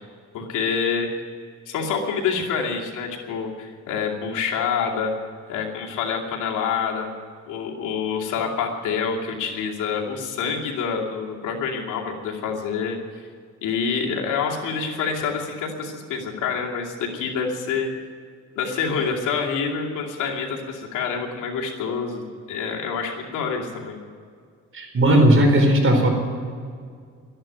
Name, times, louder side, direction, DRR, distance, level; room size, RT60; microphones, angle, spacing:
voice 1, 0.3-1.1 1.7-5.1 5.5-7.1 7.5-13.0 13.6-17.9 18.6-24.0, left 6 dB, 90° left, 0 dB, 2.6 m, -27 dB
voice 2, 24.7-26.1, right 1 dB, 45° right, 3 dB, 4.5 m, -16 dB
13.0 x 11.0 x 9.2 m, 2.1 s
cardioid pair, 90°, 30 cm